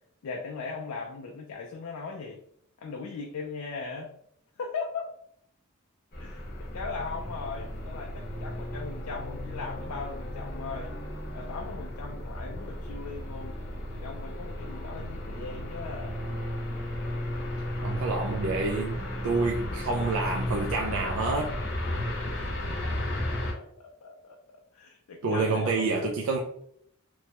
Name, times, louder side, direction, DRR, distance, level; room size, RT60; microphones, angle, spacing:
voice 1, 0.2-2.4 2.8-4.1 4.6-5.0 6.2-10.9 11.3-13.6 13.9-16.3 22.3-22.5 22.8-22.9 23.3-24.4 24.7-25.9, left 4 dB, 85° left, 0 dB, 0.4 m, -39 dB
sound 1, 6.1-23.5, left 1 dB, 45° left, 0.8 m, -34 dB
sound 2, 17.5-23.2, equal, 10° left, 0.8 m, -47 dB
voice 2, 17.8-21.5 25.2-26.4, right 3 dB, 75° right, 0 dB, 0.4 m, -28 dB
3.0 x 2.2 x 2.8 m, 0.69 s
head